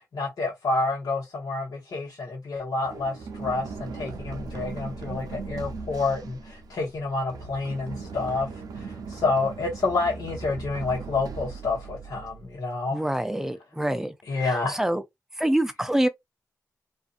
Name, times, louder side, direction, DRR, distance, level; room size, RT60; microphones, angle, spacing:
voice 1, 0.0-8.5 8.7-13.0 14.3-14.8, left 3 dB, 70° left, 1.1 m, -29 dB
Run, 2.8-12.6, right 4 dB, 80° right, 0.5 m, -38 dB
voice 2, 12.9-14.1 14.4-15.0 15.4-16.1, right 1 dB, 5° right, 0.5 m, -25 dB
2.5 x 2.5 x 2.5 m
cardioid pair, 65°, 6 cm